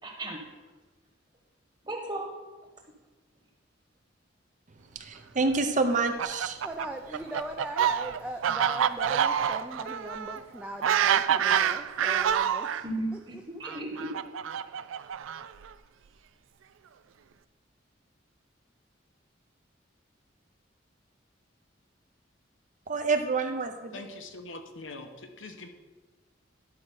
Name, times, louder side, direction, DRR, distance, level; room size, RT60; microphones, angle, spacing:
voice 1, 0.0-0.5 1.8-2.4 12.8-14.2, right 1 dB, 25° right, 1.4 m, -35 dB
voice 2, 4.9-6.6 22.9-23.9, right 3 dB, 40° right, 0.7 m, -27 dB
Fowl, 5.9-12.8 13.6-15.7, right 9 dB, 85° right, 0.4 m, -27 dB
voice 3, 6.6-12.8 13.1-13.2, right 1 dB, 5° right, 0.4 m, -40 dB
voice 4, 23.9-25.7, left 2 dB, 80° left, 1.0 m, -43 dB
11.5 x 4.9 x 5.8 m
head